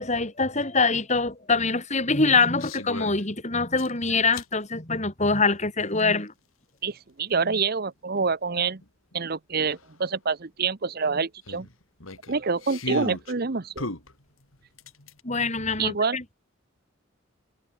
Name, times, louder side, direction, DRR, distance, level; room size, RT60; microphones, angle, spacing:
voice 1, 0.0-6.3 15.2-16.2, left 4 dB, 35° left, 4.1 m, -24 dB
sound 1, 2.5-3.2 3.8-4.5 6.0-6.1 8.8-8.9 9.1-9.2 9.7-9.8 11.5-13.3 13.8-15.2, left 2 dB, 80° left, 5.7 m, -36 dB
voice 2, 6.8-8.8 9.1-11.7 12.3-13.9 15.8-16.2, right 5 dB, 50° right, 0.9 m, -27 dB
head